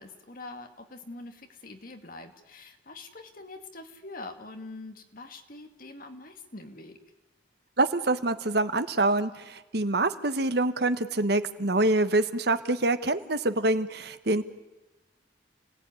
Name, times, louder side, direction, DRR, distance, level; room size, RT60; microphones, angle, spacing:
voice 1, 0.0-7.0, left 2 dB, 50° left, 6 dB, 2.3 m, -44 dB
voice 2, 7.8-14.4, right 2 dB, 55° right, 11 dB, 1.2 m, -26 dB
29.5 x 18.0 x 9.7 m, 1.1 s
head